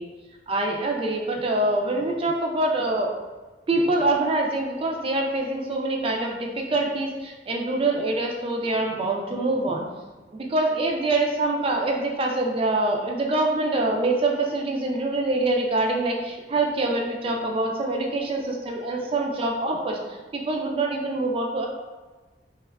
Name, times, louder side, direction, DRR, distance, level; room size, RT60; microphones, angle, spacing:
voice 1, 0.5-3.1 3.7-9.9 10.3-20.0 20.3-21.7, right 2 dB, 30° right, 1 dB, 0.3 m, -25 dB
2.9 x 2.2 x 3.4 m, 1.3 s
head